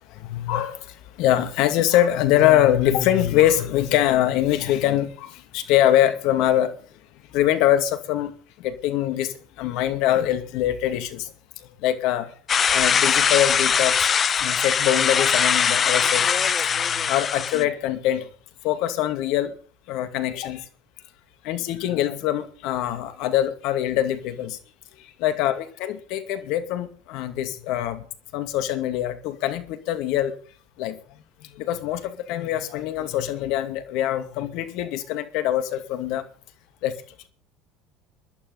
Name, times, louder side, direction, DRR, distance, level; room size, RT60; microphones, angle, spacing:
voice 1, 0.3-0.8 1.2-6.7 7.3-8.3 8.6-9.3 9.6-11.3 11.8-12.3 12.7-14.1 14.4-18.3 18.6-19.5 19.9-20.6 21.4-24.6 25.2-28.0 28.3-30.3 30.8-31.0 31.6-36.2 36.8-36.9, left 12 dB, 65° left, 2.4 m, -23 dB
sound 1, 12.5-17.6, left 7 dB, 35° left, 1.0 m, -21 dB
20.0 x 12.0 x 4.0 m
hypercardioid pair, 75°, 0 cm